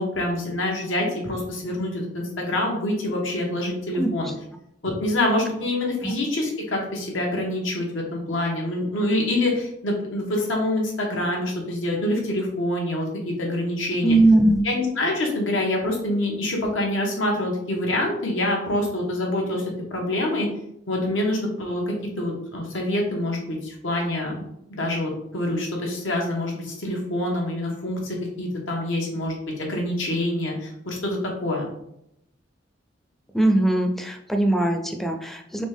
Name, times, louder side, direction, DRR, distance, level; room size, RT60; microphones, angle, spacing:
voice 1, 0.0-4.3 4.8-14.2 14.6-19.6 19.9-20.5 20.9-31.6, left 1 dB, 85° left, 0 dB, 1.3 m, -26 dB
voice 2, 4.0-4.3 6.0-6.1 14.0-14.6 33.3-35.6, right 2 dB, ahead, 4 dB, 0.4 m, -20 dB
4.2 x 3.3 x 3.5 m, 0.77 s
head